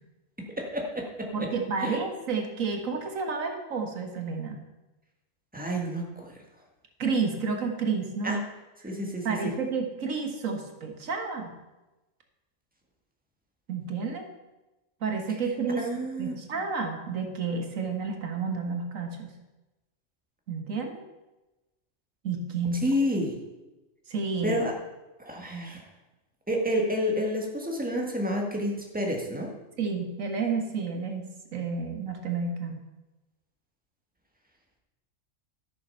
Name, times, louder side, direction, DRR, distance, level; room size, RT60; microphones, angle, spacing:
voice 1, 0.6-1.3 1.8-2.0 5.5-6.3 8.2-8.4 8.8-9.3 15.3-15.4 15.8-16.4 22.8-23.4 24.4-24.7 25.2-25.9 26.5-29.5, equal, 5° right, 1 dB, 1.7 m, -29 dB
voice 2, 1.3-4.6 7.0-8.3 9.3-11.5 13.7-14.3 15.0-15.9 16.2-19.3 20.5-21.0 22.2-22.8 24.1-24.6 29.8-32.8, right 4 dB, 90° right, 4 dB, 1.8 m, -30 dB
12.5 x 6.8 x 5.7 m, 1.1 s
omnidirectional pair, 1.3 m